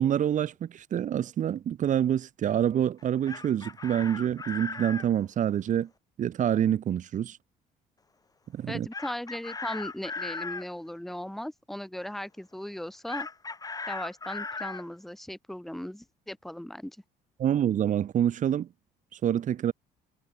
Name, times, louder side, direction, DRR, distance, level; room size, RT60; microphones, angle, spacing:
voice 1, 0.0-5.9 6.2-7.4 8.5-8.9 17.4-18.7 19.2-19.7, right 10 dB, 50° right, 1.2 m, -26 dB
Chicken rooster, 3.0-5.1 8.9-10.7 13.1-14.8, left 4 dB, 20° left, 2.3 m, -37 dB
voice 2, 8.7-13.3 13.9-17.0, left 1 dB, ahead, 0.9 m, -37 dB
cardioid pair, 110°, 17 cm